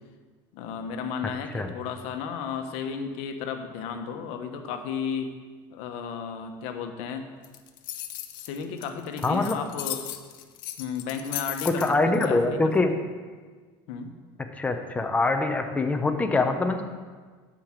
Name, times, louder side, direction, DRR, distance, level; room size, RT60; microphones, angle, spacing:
voice 1, 0.5-5.3 5.7-7.2 8.4-10.0 10.8-12.6 13.9-14.1, left 6 dB, 70° left, 6 dB, 1.2 m, -33 dB
sound 1, 7.4-12.3, left 13 dB, 90° left, 0.9 m, -36 dB
voice 2, 9.2-9.6 11.6-12.9 14.6-16.8, left 3 dB, 15° left, 5 dB, 1.0 m, -24 dB
9.8 x 5.1 x 7.5 m, 1.5 s
supercardioid pair, 115°, 11 cm